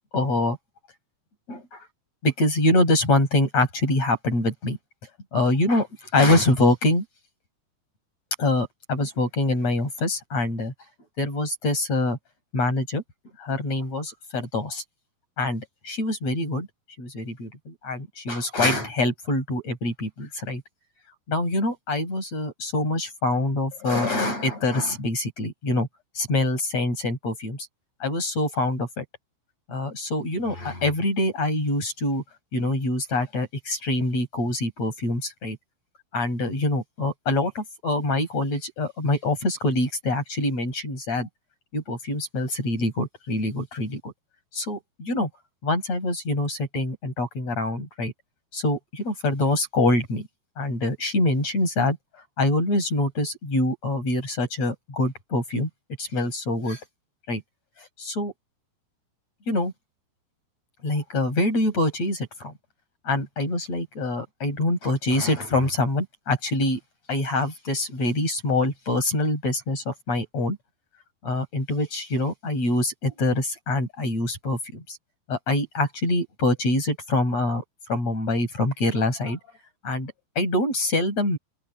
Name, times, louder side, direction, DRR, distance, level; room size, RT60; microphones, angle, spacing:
voice 1, 0.1-0.6 1.5-1.8 2.2-4.8 5.3-5.9 6.1-7.0 8.4-10.7 11.2-12.2 12.5-13.0 13.4-14.8 15.4-16.7 17.0-20.6 21.3-25.9 26.2-27.6 28.0-29.0 29.7-32.2 32.5-35.6 36.1-41.3 41.7-44.1 44.5-45.3 45.6-48.1 48.5-50.3 50.6-52.0 52.4-55.7 56.0-56.8 57.3-57.4 58.0-58.3 59.5-59.7 60.8-62.5 63.0-66.8 67.1-70.6 71.2-75.0 75.3-77.6 77.9-79.4 79.8-81.4, left 2 dB, 40° left, 8.2 m, -25 dB
open air
omnidirectional pair, 4.7 m